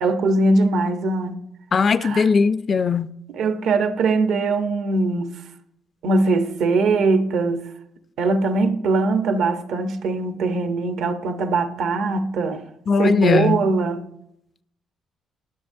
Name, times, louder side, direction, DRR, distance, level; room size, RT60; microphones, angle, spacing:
voice 1, 0.0-1.4 2.0-2.3 3.3-5.3 6.0-7.6 8.2-12.6 13.0-14.0, right 3 dB, 80° right, 0.8 m, -21 dB
voice 2, 1.7-3.1 12.9-13.7, left 5 dB, 45° left, 0.4 m, -19 dB
21.0 x 7.2 x 2.6 m
cardioid pair, 90°, 0 cm